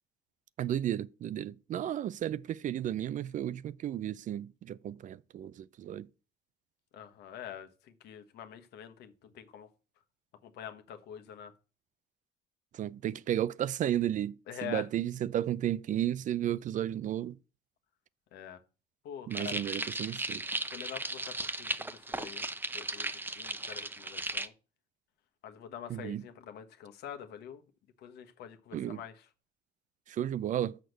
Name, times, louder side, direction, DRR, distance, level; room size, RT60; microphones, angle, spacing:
voice 1, 0.6-6.1 12.7-14.3 14.6-17.4 19.3-20.4 25.9-26.2 28.7-29.0 30.1-30.8, right 11 dB, 50° right, 0.4 m, -33 dB
voice 2, 6.9-9.7 10.4-11.5 14.5-14.9 18.3-18.6 19.0-19.6 20.7-24.5 25.4-27.6 28.0-29.3, left 9 dB, 75° left, 1.2 m, -45 dB
sound 1, 19.3-24.5, right 2 dB, 10° right, 0.7 m, -36 dB
6.5 x 6.2 x 6.6 m
cardioid pair, 110°, 17 cm